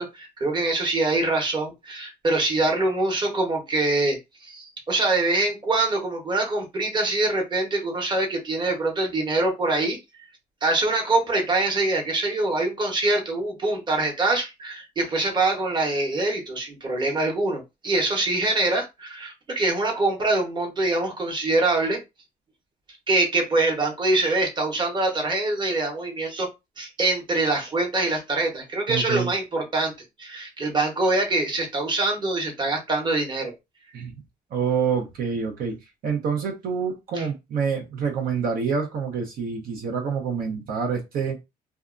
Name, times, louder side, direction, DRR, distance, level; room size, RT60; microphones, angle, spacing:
voice 1, 0.0-10.3 10.6-22.0 23.1-26.5 26.8-29.9 30.2-33.5 37.1-37.3, right 2 dB, 25° right, 1 dB, 1.0 m, -24 dB
voice 2, 28.9-29.3 33.9-34.1 34.5-35.8 36.0-41.4, right 6 dB, 60° right, 1 dB, 0.8 m, -27 dB
2.7 x 2.3 x 2.5 m, 0.23 s
cardioid pair, 110°, 17 cm